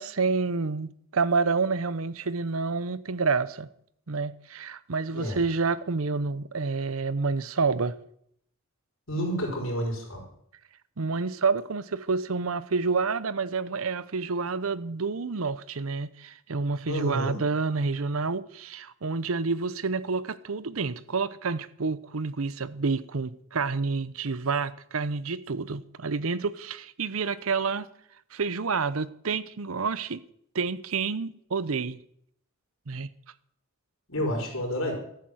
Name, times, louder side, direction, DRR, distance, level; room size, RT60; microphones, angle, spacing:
voice 1, 0.0-3.7 4.1-8.0 11.0-27.9 28.3-30.2 30.5-32.0 32.9-33.1, right 4 dB, 80° right, 0.8 m, -28 dB
voice 2, 9.1-10.2 16.9-17.4 34.1-34.9, equal, 70° left, 4.9 m, -29 dB
14.0 x 8.6 x 7.9 m
head